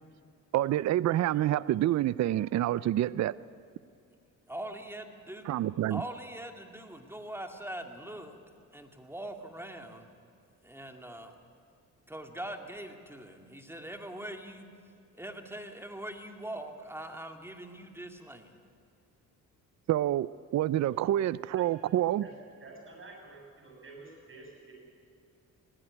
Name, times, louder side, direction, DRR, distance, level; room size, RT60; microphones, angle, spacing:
voice 1, 0.5-3.4 5.4-6.0 19.9-22.3, right 13 dB, 55° right, 19 dB, 0.5 m, -27 dB
voice 2, 4.5-5.5 5.9-8.4 8.7-10.1 10.6-11.3 12.1-14.7 15.1-18.5, right 1 dB, 5° right, 5 dB, 2.2 m, -42 dB
voice 3, 22.6-24.7, right 3 dB, 40° right, 0 dB, 7.3 m, -49 dB
20.5 x 16.0 x 9.8 m, 2.3 s
cardioid pair, 85°, 32 cm